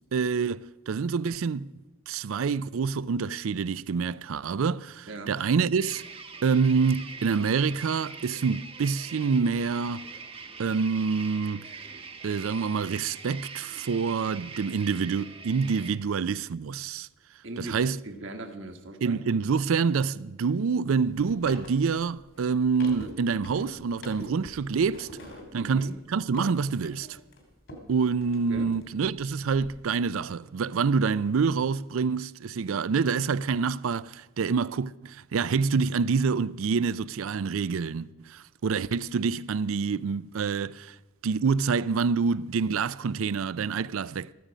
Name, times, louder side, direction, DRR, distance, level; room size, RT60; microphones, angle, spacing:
voice 1, 0.1-1.7 2.1-6.0 6.4-10.1 10.6-11.7 12.2-17.1 17.6-18.0 19.0-25.1 25.5-27.2 27.9-41.0 41.2-44.3, right 5 dB, 80° right, 0.4 m, -27 dB
sound 1, 5.7-15.9, right 4 dB, 25° right, 0.9 m, -43 dB
voice 2, 17.4-19.2 25.5-26.0 28.5-28.7, right 2 dB, 65° right, 1.3 m, -39 dB
sound 2, 20.9-27.9 28.2-29.7, equal, 65° left, 3.0 m, -45 dB
14.5 x 14.0 x 5.1 m
head